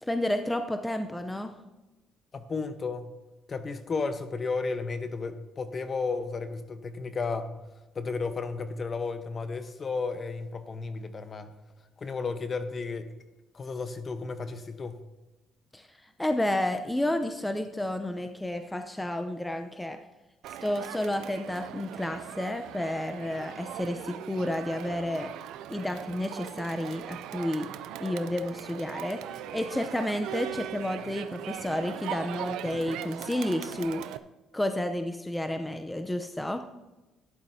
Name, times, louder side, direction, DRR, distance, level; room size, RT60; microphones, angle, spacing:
voice 1, 0.0-1.6 15.7-15.9 16.2-20.0 20.6-25.3 25.7-27.7 28.0-34.0 34.5-36.7, left 1 dB, 10° left, 8 dB, 0.6 m, -31 dB
voice 2, 2.3-3.1 3.5-7.6 7.9-11.5 12.0-13.1 13.5-15.0, left 4 dB, 40° left, 9 dB, 1.0 m, -33 dB
Crowd, 20.4-34.2, right 11 dB, 80° right, 0.5 m, -40 dB
13.0 x 11.5 x 2.8 m, 1.1 s
cardioid pair, 85°, 0 cm